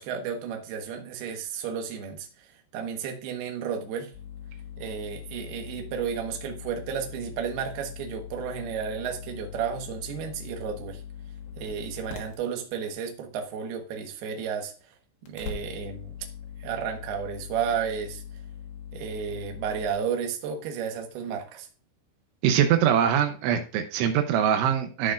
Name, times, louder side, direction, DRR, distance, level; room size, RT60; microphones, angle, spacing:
voice 1, 0.0-2.5 2.7-4.1 4.8-11.0 11.6-14.7 15.2-16.2 16.6-18.2 18.9-21.7, right 7 dB, 65° right, 3.0 m, -32 dB
sound 1, 4.1-12.4 15.3-19.9, left 8 dB, 80° left, 3.7 m, -41 dB
voice 2, 22.4-25.1, right 9 dB, 85° right, 3.2 m, -23 dB
14.0 x 6.2 x 2.5 m
omnidirectional pair, 5.4 m